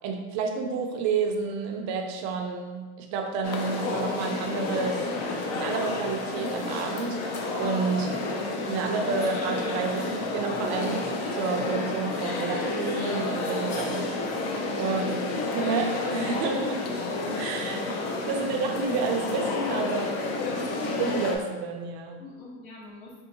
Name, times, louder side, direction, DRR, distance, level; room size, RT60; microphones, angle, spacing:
voice 1, 0.0-5.1 5.5-7.2 7.6-8.1 8.6-14.1 14.8-15.3 15.5-16.9 17.4-17.9 18.3-20.3 21.0-22.2, right 4 dB, 60° right, 4 dB, 0.5 m, -30 dB
sound 1, 3.4-21.4, left 2 dB, 50° left, 0.5 m, -30 dB
voice 2, 14.8-15.1 18.3-18.7 20.4-21.0 22.2-23.1, left 1 dB, 70° left, -3 dB, 1.0 m, -44 dB
3.4 x 2.7 x 2.7 m, 1.3 s
cardioid pair, 125°, 32 cm